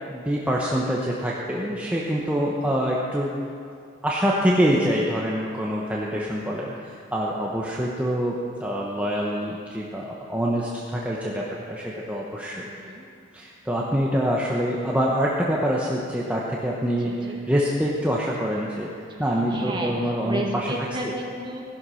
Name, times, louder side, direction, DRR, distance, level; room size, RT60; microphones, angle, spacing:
voice 1, 0.1-3.3 4.0-12.7 13.3-18.9 19.2-20.7, equal, 5° right, -4 dB, 1.0 m, -25 dB
voice 2, 2.5-2.9 12.6-13.1 17.0-17.4 19.2-21.6, right 1 dB, 25° right, -1 dB, 1.8 m, -33 dB
16.0 x 11.5 x 5.7 m, 2.4 s
head